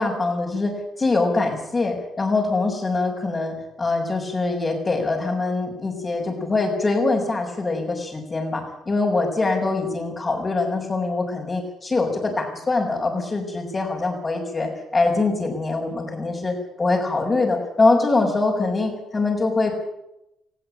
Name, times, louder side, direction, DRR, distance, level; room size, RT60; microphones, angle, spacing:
voice 1, 0.0-19.7, left 3 dB, 30° left, -5 dB, 5.5 m, -23 dB
20.0 x 15.5 x 8.9 m, 0.85 s
cardioid pair, 90°, 0 cm